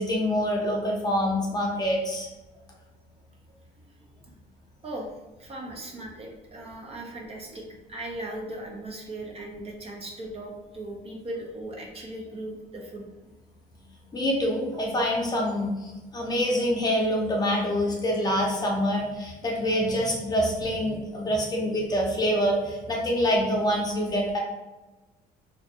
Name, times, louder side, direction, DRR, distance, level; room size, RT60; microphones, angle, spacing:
voice 1, 0.0-2.3 14.1-24.4, equal, 25° left, -1 dB, 0.6 m, -26 dB
voice 2, 5.4-13.1, right 1 dB, 35° right, 1 dB, 0.5 m, -38 dB
2.5 x 2.1 x 2.7 m, 1.1 s
cardioid pair, 110°, 17 cm